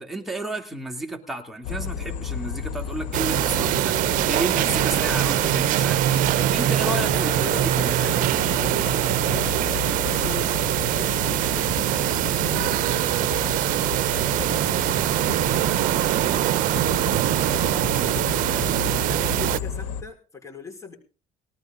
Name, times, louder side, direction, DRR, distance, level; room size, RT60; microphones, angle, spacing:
voice 1, 0.0-7.9, right 2 dB, ahead, 2 dB, 2.9 m, -32 dB
sound 1, 1.6-20.0, left 7 dB, 90° left, 1.6 m, -33 dB
sound 2, 3.1-19.6, right 14 dB, 70° right, 0.7 m, -23 dB
voice 2, 6.8-13.9 14.2-15.7 16.1-16.9 17.6-21.0, left 4 dB, 20° left, 1 dB, 5.0 m, -40 dB
19.0 x 13.5 x 3.8 m, 0.37 s
supercardioid pair, 90°, 14 cm